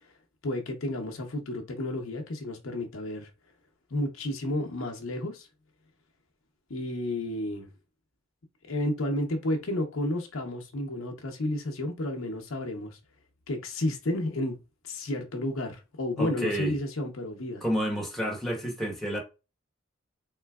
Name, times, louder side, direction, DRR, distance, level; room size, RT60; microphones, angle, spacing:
voice 1, 0.4-3.3 3.9-5.5 6.7-7.7 8.7-13.0 13.5-14.6 14.8-17.6, left 1 dB, 90° left, 0.8 m, -31 dB
voice 2, 16.2-16.7 17.6-19.2, equal, ahead, 1.1 m, -30 dB
3.8 x 3.2 x 2.3 m
head